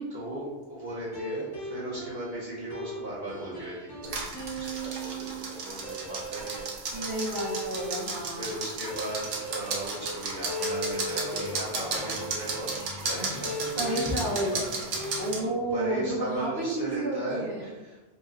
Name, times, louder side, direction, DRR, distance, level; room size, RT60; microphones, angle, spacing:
voice 1, 0.1-4.3 4.6-6.7 8.3-12.7 13.1-13.7 14.9-15.1 15.7-18.0, right 1 dB, 20° right, -9 dB, 1.3 m, -37 dB
sound 1, 0.9-15.3, right 1 dB, 25° left, 0.7 m, -38 dB
sound 2, 4.0-15.4, right 3 dB, 90° right, 1.0 m, -35 dB
voice 2, 6.9-8.5 13.8-14.6 15.2-17.7, right 1 dB, 50° right, -8 dB, 1.0 m, -31 dB
sound 3, 9.4-16.2, left 2 dB, 80° left, 1.0 m, -42 dB
4.1 x 2.6 x 2.5 m, 1.1 s
omnidirectional pair, 1.2 m